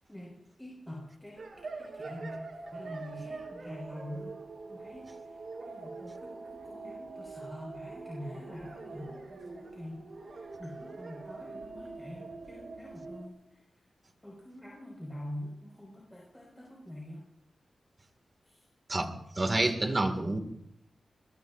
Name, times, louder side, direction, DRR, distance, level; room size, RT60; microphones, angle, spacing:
voice 1, 0.1-1.4 1.8-2.4 2.7-4.4 4.7-13.6 14.2-17.2 18.4-18.6, left 1 dB, 10° left, -3 dB, 5.2 m, -45 dB
sound 1, 1.4-13.3, right 3 dB, 65° right, 3.5 m, -44 dB
voice 2, 19.4-20.4, right 2 dB, 30° right, 6 dB, 2.1 m, -28 dB
22.5 x 22.0 x 2.6 m, 0.79 s
wide cardioid pair, 90°, 0 cm